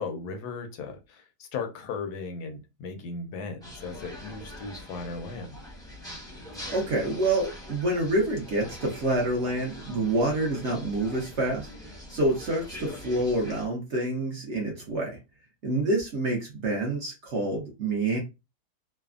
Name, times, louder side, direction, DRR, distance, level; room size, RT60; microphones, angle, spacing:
voice 1, 0.0-5.6, left 4 dB, 80° left, 1.1 m, -37 dB
sound 1, 3.6-13.7, left 1 dB, 5° left, 0.6 m, -43 dB
voice 2, 6.7-11.7 12.1-15.2 15.6-18.2, right 1 dB, 55° right, 0.8 m, -27 dB
3.2 x 2.0 x 2.4 m
omnidirectional pair, 1.7 m